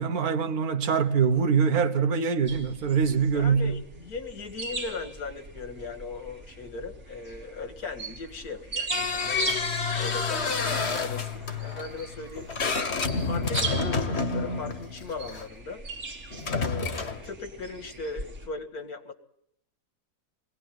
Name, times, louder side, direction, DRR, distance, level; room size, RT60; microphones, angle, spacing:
voice 1, 0.0-3.8, right 6 dB, 75° right, 1.8 m, -24 dB
sound 1, 2.5-18.5, right 3 dB, 50° right, 2.1 m, -39 dB
voice 2, 3.3-12.5 13.3-15.8 16.5-19.1, left 4 dB, 85° left, 2.4 m, -38 dB
sound 2, 8.9-15.5 16.3-17.3, left 4 dB, 50° left, 1.6 m, -29 dB
23.0 x 18.0 x 9.3 m
omnidirectional pair, 1.6 m